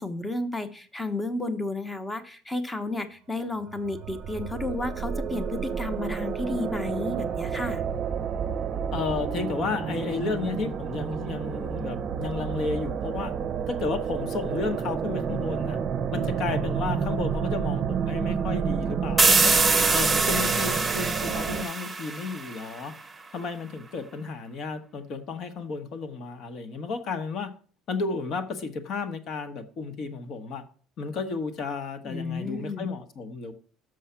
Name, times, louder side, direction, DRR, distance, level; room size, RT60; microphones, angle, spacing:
voice 1, 0.0-7.8 32.0-32.9, left 2 dB, 10° left, 0.9 m, -32 dB
sound 1, 3.6-21.6, right 7 dB, 40° right, 0.6 m, -30 dB
voice 2, 8.9-13.3 13.7-15.8 16.1-19.6 19.9-22.9 23.3-27.5 27.9-30.6 31.0-33.5, left 4 dB, 50° left, 1.1 m, -32 dB
sound 2, 19.2-22.8, right 3 dB, 10° right, 1.0 m, -23 dB
6.4 x 5.5 x 5.7 m
cardioid pair, 125°, 0 cm